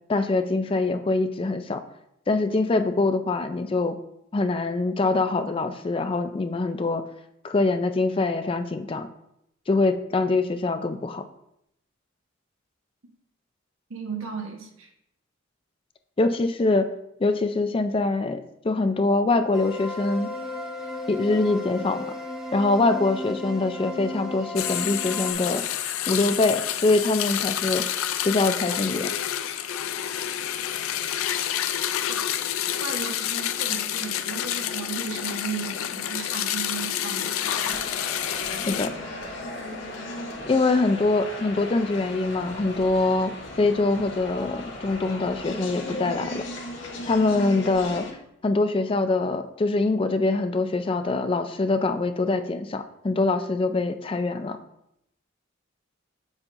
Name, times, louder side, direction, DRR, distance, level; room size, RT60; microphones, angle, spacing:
voice 1, 0.1-1.8 2.3-4.0 4.3-7.1 7.4-9.1 9.7-11.2 16.2-16.9 17.2-20.3 21.1-22.0 22.5-25.6 26.1-27.8 28.2-29.1 38.7-38.9 40.5-46.4 47.1-48.1 48.4-54.6, left 3 dB, 25° left, 9 dB, 0.4 m, -24 dB
voice 2, 13.9-14.9 32.1-32.2 32.8-37.4, right 5 dB, 80° right, 2 dB, 1.2 m, -35 dB
sound 1, 19.5-25.3, left 1 dB, 5° right, 1.1 m, -35 dB
sound 2, 24.6-38.9, left 10 dB, 85° left, 0.4 m, -29 dB
sound 3, 37.4-48.1, left 1 dB, 65° left, 1.3 m, -36 dB
7.1 x 6.9 x 2.6 m, 0.79 s
head